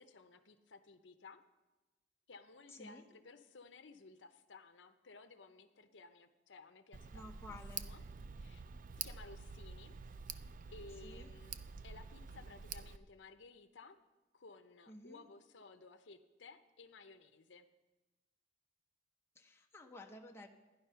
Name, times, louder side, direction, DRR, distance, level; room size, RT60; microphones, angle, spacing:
voice 1, 0.0-1.4 2.3-7.6 7.8-8.0 8.4-8.6 9.0-9.9 10.3-14.0 14.3-17.7, left 3 dB, 75° left, 8 dB, 0.7 m, -57 dB
Tick, 6.9-13.0, right 6 dB, 45° right, 0.4 m, -48 dB
voice 2, 7.1-7.9 11.0-11.3 14.9-15.2 19.3-20.5, left 1 dB, 15° left, 1 dB, 1.0 m, -53 dB
13.5 x 10.5 x 5.6 m, 1.1 s
head